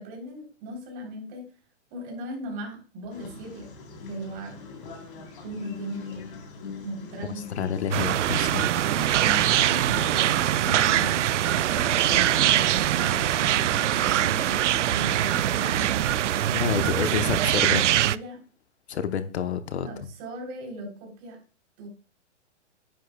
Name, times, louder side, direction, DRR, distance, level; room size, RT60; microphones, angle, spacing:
voice 1, 0.0-1.4 1.9-3.7 4.1-4.6 5.4-6.2 6.8-8.1 8.7-11.4 11.6-16.0 17.2-18.4 19.8-21.4 21.8-21.9, right 1 dB, 25° right, 0 dB, 3.5 m, -38 dB
sound 1, 3.1-16.5, left 4 dB, 45° left, 3.7 m, -42 dB
voice 2, 7.6-8.7 16.5-17.8 18.9-19.9, left 7 dB, 65° left, 10 dB, 1.0 m, -28 dB
sound 2, 7.9-18.2, right 12 dB, 75° right, 0.5 m, -23 dB
10.5 x 10.0 x 2.3 m, 0.37 s
hypercardioid pair, 160°, 36 cm